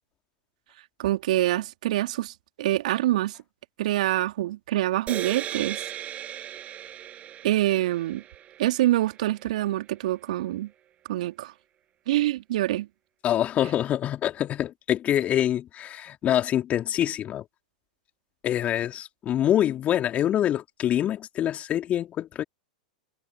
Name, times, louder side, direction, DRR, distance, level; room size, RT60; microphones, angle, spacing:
voice 1, 1.0-3.4 3.8-5.8 7.4-8.2 8.6-10.7 11.1-11.5 12.1-12.9, right 15 dB, 65° right, 3.0 m, -25 dB
sound 1, 5.1-9.5, right 11 dB, 30° right, 5.9 m, -37 dB
voice 2, 13.2-17.5 18.4-22.4, left 11 dB, 30° left, 3.7 m, -25 dB
figure-of-eight pair, 95°, 4 cm